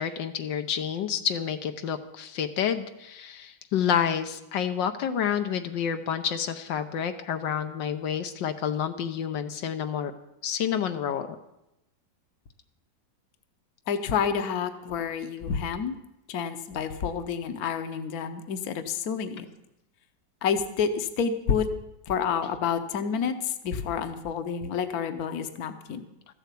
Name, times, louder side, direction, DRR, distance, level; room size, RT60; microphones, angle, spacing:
voice 1, 0.0-10.1 10.4-11.3, left 8 dB, 80° left, 8 dB, 1.5 m, -29 dB
voice 2, 13.9-15.9 16.3-19.4 20.4-21.7 22.1-23.4 23.6-26.1, left 7 dB, 60° left, 9 dB, 1.3 m, -29 dB
14.0 x 8.0 x 8.3 m, 0.88 s
omnidirectional pair, 1.9 m